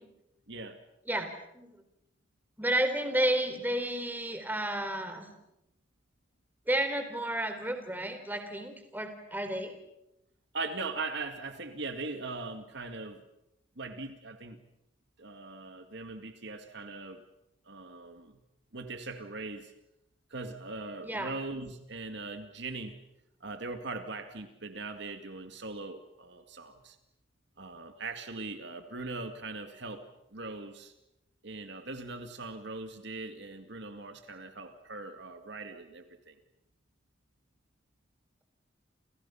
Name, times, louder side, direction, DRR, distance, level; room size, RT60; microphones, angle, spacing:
voice 1, 0.5-0.8 10.5-13.2 13.8-14.6 15.2-17.2 17.7-18.4 18.7-19.7 20.3-23.0 23.4-27.0 27.6-30.0 30.3-30.9 31.4-36.4, right 3 dB, 60° right, 7 dB, 2.1 m, -40 dB
voice 2, 2.6-5.3 6.7-9.7 21.0-21.3, right 1 dB, 10° right, 7 dB, 3.8 m, -31 dB
30.0 x 29.5 x 5.7 m, 0.84 s
head